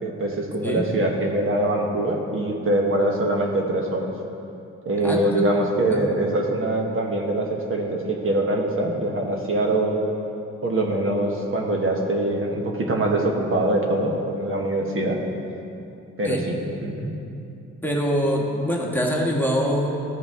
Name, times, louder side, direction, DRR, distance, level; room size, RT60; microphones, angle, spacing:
voice 1, 0.0-4.1 4.8-10.1 10.6-15.2 16.2-17.1, right 1 dB, 45° right, 0 dB, 1.2 m, -23 dB
voice 2, 5.0-5.5 5.9-6.0 16.2-16.5 17.8-19.9, equal, 5° left, -2 dB, 1.3 m, -24 dB
14.5 x 5.1 x 3.6 m, 2.7 s
cardioid pair, 90°, 30 cm